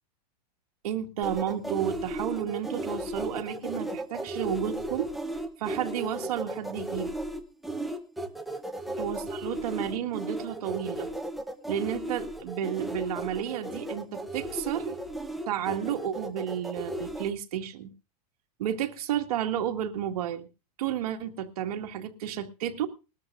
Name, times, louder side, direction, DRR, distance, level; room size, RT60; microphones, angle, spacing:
voice 1, 0.8-5.1 5.6-7.1 9.0-11.1 11.7-15.0 15.5-17.9 18.6-20.5 20.8-22.9, right 10 dB, 60° right, 4 dB, 1.9 m, -32 dB
sound 1, 1.2-17.3, right 1 dB, ahead, 0.7 m, -35 dB
20.5 x 13.0 x 2.5 m, 0.31 s
supercardioid pair, 175°, 21 cm